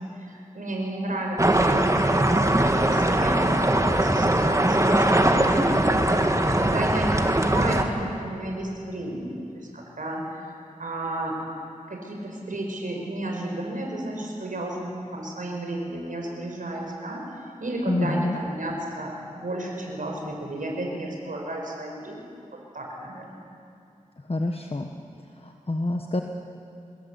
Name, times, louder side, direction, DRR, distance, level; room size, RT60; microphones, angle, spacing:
voice 1, 0.0-11.4 11.9-17.2 17.6-19.2 19.4-23.5, right 1 dB, 80° right, 0 dB, 5.3 m, -33 dB
sound 1, 1.4-7.8, right 1 dB, 25° right, 1.8 m, -21 dB
voice 2, 17.9-18.4 24.3-24.9 25.4-26.2, left 2 dB, 45° left, 3 dB, 1.4 m, -27 dB
25.5 x 21.5 x 8.4 m, 2.6 s
wide cardioid pair, 65°, 14 cm